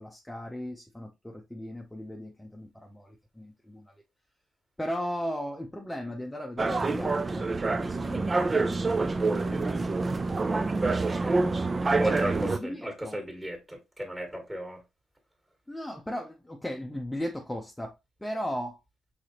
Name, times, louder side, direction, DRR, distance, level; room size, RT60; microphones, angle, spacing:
voice 1, 0.0-3.9 4.8-10.3 10.7-11.8 12.5-13.2 15.7-18.8, equal, 5° left, 0.7 m, -37 dB
sound 1, 6.6-12.6, right 3 dB, 30° right, 0.4 m, -27 dB
voice 2, 12.0-14.8, right 1 dB, 10° right, 1.7 m, -34 dB
4.7 x 3.9 x 2.8 m
cardioid pair, 90°, 0 cm